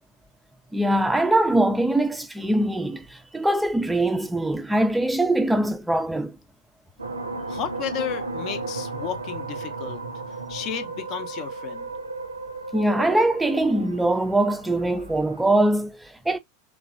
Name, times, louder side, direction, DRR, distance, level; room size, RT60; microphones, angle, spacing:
voice 1, 0.7-6.3 12.7-16.4, right 1 dB, 5° right, 0.4 m, -22 dB
sound 1, 7.0-15.4, right 3 dB, 85° right, 0.4 m, -34 dB
voice 2, 7.5-10.0 10.5-11.9, left 9 dB, 45° left, 0.6 m, -33 dB
3.0 x 2.2 x 2.4 m
figure-of-eight pair, 85°, 0 cm